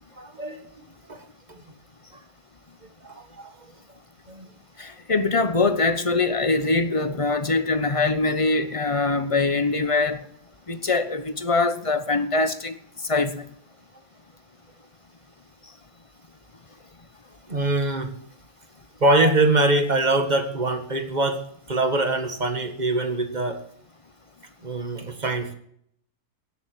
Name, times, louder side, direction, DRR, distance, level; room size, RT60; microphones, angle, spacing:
voice 1, 0.2-0.7 1.1-1.2 1.5-1.6 3.0-3.5 4.3-4.5 17.5-18.1 19.0-23.6 24.6-25.5, right 2 dB, 25° right, 1.7 m, -23 dB
voice 2, 4.8-10.2 10.7-12.7 13.1-13.4, left 3 dB, 25° left, 0.8 m, -23 dB
17.0 x 7.6 x 7.7 m
omnidirectional pair, 1.7 m